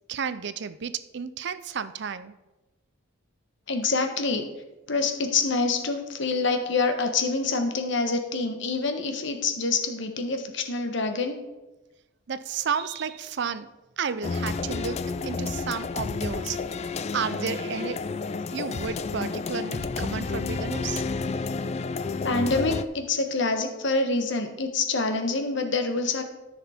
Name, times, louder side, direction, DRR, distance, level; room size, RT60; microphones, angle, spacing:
voice 1, 0.1-2.3 12.3-16.6 17.1-18.0 18.5-21.0, right 6 dB, 55° right, 14 dB, 0.5 m, -32 dB
voice 2, 3.7-4.4 4.9-11.4 22.2-26.2, left 3 dB, 60° left, 6 dB, 1.2 m, -26 dB
sound 1, 14.2-22.8, left 4 dB, 30° left, 0.3 m, -30 dB
13.5 x 6.0 x 4.3 m, 1.1 s
head